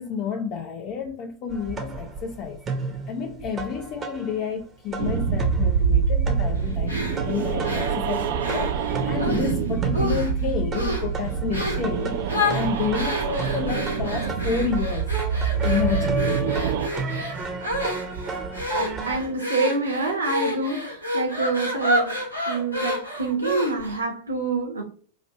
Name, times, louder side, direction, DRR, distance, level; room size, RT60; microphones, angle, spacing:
voice 1, 0.0-2.6 3.1-15.1 15.6-16.2, left 6 dB, 40° left, 0.5 m, -30 dB
sound 1, 1.5-4.6 4.9-19.2, right 3 dB, 25° right, 0.7 m, -33 dB
sound 2, 5.0-16.9, right 6 dB, 55° right, 0.4 m, -26 dB
sound 3, 6.9-9.5 9.9-10.4 10.7-11.1 11.5-11.9 12.3-24.0, left 1 dB, 85° left, 0.9 m, -29 dB
voice 2, 18.7-22.2 22.5-24.8, right 3 dB, 75° right, 1.1 m, -27 dB
4.1 x 2.5 x 2.9 m
figure-of-eight pair, 90°, 0 cm